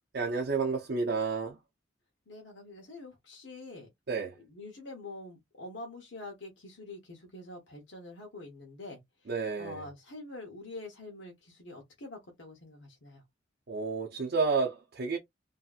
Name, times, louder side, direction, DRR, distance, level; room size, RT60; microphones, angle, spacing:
voice 1, 0.1-1.6 4.1-4.4 9.3-9.9 13.7-15.2, right 4 dB, 60° right, 0.6 m, -30 dB
voice 2, 2.3-3.9 4.5-9.0 9.6-13.2, left 2 dB, 80° left, 1.0 m, -45 dB
2.7 x 2.6 x 2.4 m
head